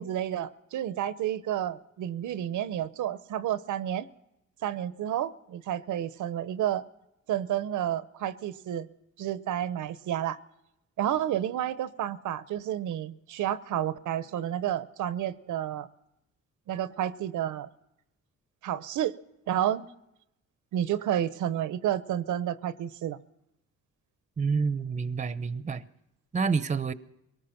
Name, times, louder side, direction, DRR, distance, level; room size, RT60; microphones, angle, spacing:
voice 1, 0.0-4.1 4.6-6.8 7.3-8.9 9.2-10.4 11.0-15.9 16.7-17.7 18.6-19.1 19.5-19.9 20.7-23.2, right 11 dB, 90° right, 0.9 m, -30 dB
voice 2, 24.4-25.8 26.3-26.9, right 5 dB, 25° right, 0.8 m, -28 dB
23.0 x 19.0 x 5.9 m
cardioid pair, 130°, 29 cm